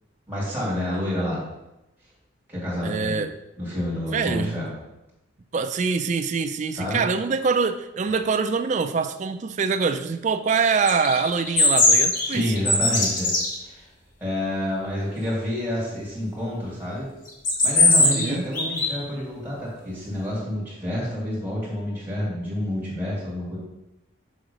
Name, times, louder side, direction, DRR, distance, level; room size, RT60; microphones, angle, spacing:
voice 1, 0.3-1.4 2.5-3.2 3.6-4.7 6.7-7.0 12.2-13.3 13.6-13.9 14.2-17.1 17.6-23.6, left 1 dB, 10° right, -7 dB, 2.4 m, -28 dB
voice 2, 2.8-3.3 4.1-4.6 5.5-12.5 18.0-18.5, right 5 dB, 35° right, 9 dB, 0.3 m, -24 dB
sound 1, 10.9-13.5 17.3-18.3 18.5-19.0, left 2 dB, 40° left, 1.3 m, -19 dB
6.3 x 3.8 x 5.3 m, 0.94 s
head